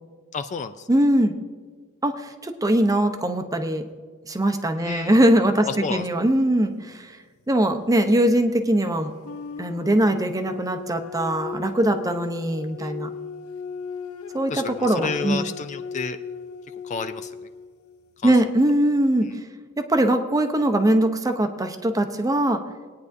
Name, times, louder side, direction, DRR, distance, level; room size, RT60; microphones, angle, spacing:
voice 1, 0.3-0.9 4.8-5.2 5.6-6.1 12.7-12.9 14.5-16.2 16.8-17.4 18.2-18.3, left 5 dB, 35° left, 9 dB, 0.3 m, -31 dB
voice 2, 0.9-1.4 2.0-3.9 4.3-7.2 7.5-9.1 9.6-13.1 14.3-15.4 18.2-19.3 19.8-22.6, right 1 dB, 15° right, 6 dB, 0.7 m, -21 dB
sound 1, 9.0-18.4, left 5 dB, 80° left, 0.6 m, -37 dB
20.5 x 9.5 x 2.6 m, 1.5 s
head